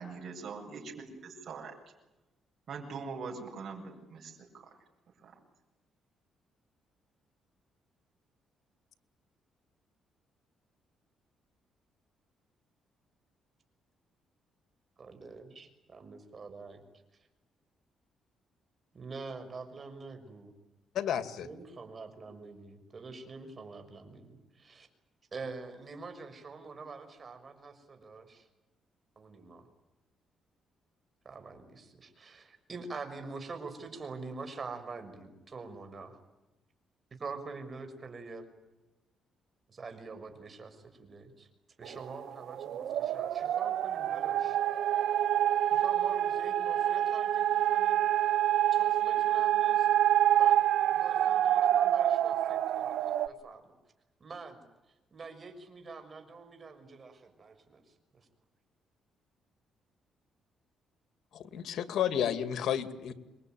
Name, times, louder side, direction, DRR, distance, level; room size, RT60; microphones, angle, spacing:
voice 1, 0.0-1.7 2.7-4.8 5.2-5.4, right 4 dB, 55° right, -1 dB, 7.7 m, -43 dB
voice 2, 15.0-16.8 18.9-20.5 21.4-24.9 25.3-28.5 29.2-29.7 31.2-36.2 37.2-38.5 39.7-41.5 41.8-44.6 45.7-48.0 48.7-53.7 54.2-54.6 55.1-58.3, right 4 dB, 40° right, 7 dB, 6.4 m, -46 dB
voice 3, 20.9-21.5 61.3-63.1, left 9 dB, 70° left, 10 dB, 2.3 m, -31 dB
sound 1, 41.9-53.3, right 12 dB, 75° right, 1.0 m, -27 dB
27.0 x 22.5 x 9.4 m, 1.0 s
cardioid pair, 90°, 0 cm